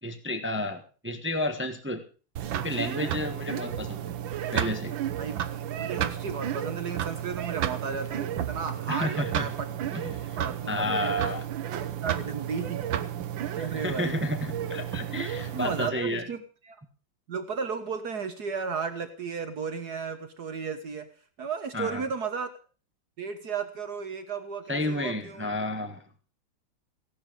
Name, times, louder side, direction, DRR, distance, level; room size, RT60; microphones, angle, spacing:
voice 1, 0.0-2.0 2.5-4.2 4.5-4.9 8.9-9.5 9.9-10.4 10.7-11.4 13.6-16.2 21.7-22.1 24.7-26.0, left 1 dB, 5° right, 7 dB, 1.3 m, -31 dB
sound 1, 2.4-15.9, right 10 dB, 75° right, 1.8 m, -32 dB
voice 2, 5.1-9.7 10.1-11.2 11.8-12.8 13.5-14.2 15.4-16.8 17.3-21.1 21.4-22.5 23.2-25.5, right 6 dB, 55° right, 9 dB, 1.7 m, -34 dB
16.5 x 11.5 x 5.2 m, 0.38 s
omnidirectional pair, 2.1 m